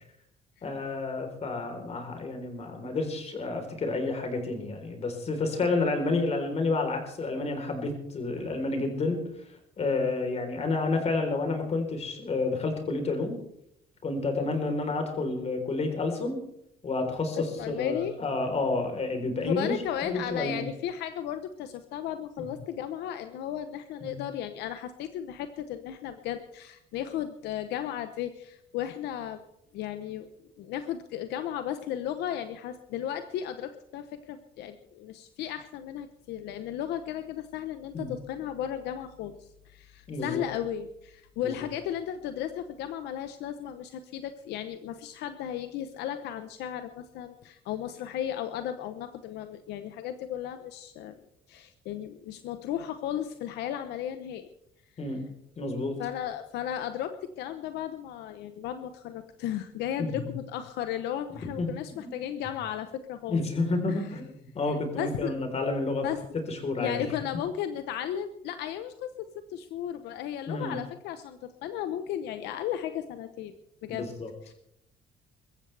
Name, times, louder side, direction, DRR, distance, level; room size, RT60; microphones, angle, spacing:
voice 1, 0.6-9.2 9.5-13.4 14.0-16.4 16.8-19.7 20.0-20.7 24.0-24.2 37.9-38.1 40.1-40.4 41.4-41.6 55.0-55.2 55.6-56.0 60.0-60.3 61.6-62.2 63.3-64.3 64.5-66.1 66.5-67.1 70.5-70.8 73.9-74.3, left 3 dB, 40° left, 4 dB, 3.9 m, -30 dB
voice 2, 17.3-18.1 19.4-29.4 29.7-30.3 30.6-51.2 51.5-54.5 56.0-63.4 63.9-64.1 65.0-65.3 66.0-66.2 66.8-73.6 73.8-74.1 74.4-74.5, left 10 dB, 85° left, 9 dB, 0.9 m, -35 dB
22.5 x 14.5 x 3.4 m, 0.77 s
cardioid pair, 110°, 17 cm